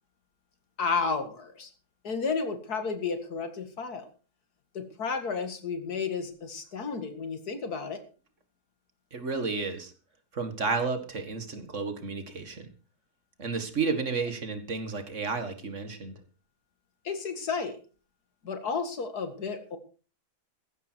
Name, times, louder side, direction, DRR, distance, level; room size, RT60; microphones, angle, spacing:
voice 1, 0.8-1.7 2.0-4.1 4.7-8.0 17.0-17.8 18.4-19.8, left 5 dB, 85° left, 8 dB, 2.5 m, -32 dB
voice 2, 9.1-9.9 10.3-12.7 13.4-16.2, right 4 dB, 50° right, 8 dB, 2.0 m, -32 dB
14.5 x 12.0 x 4.6 m, 0.37 s
omnidirectional pair, 1.6 m